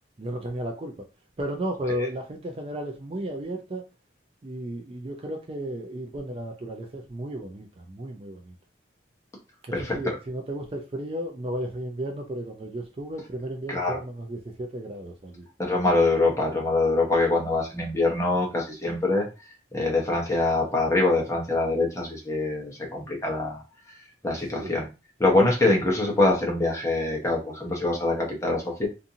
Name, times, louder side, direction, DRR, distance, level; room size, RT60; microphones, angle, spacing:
voice 1, 0.2-1.1 1.4-3.8 4.4-8.5 9.8-15.5 24.5-24.8, right 1 dB, 30° right, 3 dB, 0.3 m, -34 dB
voice 2, 9.7-10.1 13.7-14.0 15.6-19.3 19.7-23.6 24.2-24.8 25.2-28.9, left 2 dB, 15° left, -1 dB, 0.7 m, -24 dB
2.5 x 2.5 x 2.7 m, 0.30 s
head